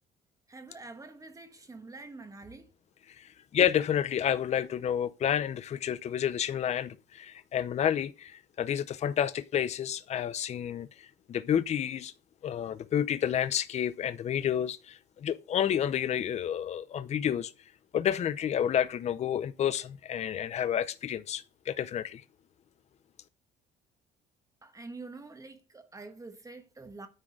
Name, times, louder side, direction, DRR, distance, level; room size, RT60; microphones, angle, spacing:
voice 1, 0.5-2.7 24.6-27.1, right 3 dB, 20° right, 1.3 m, -46 dB
voice 2, 3.2-12.1 12.4-17.5 17.9-22.2, left 9 dB, 40° left, 0.6 m, -30 dB
9.8 x 3.7 x 6.4 m
cardioid pair, 110°, 17 cm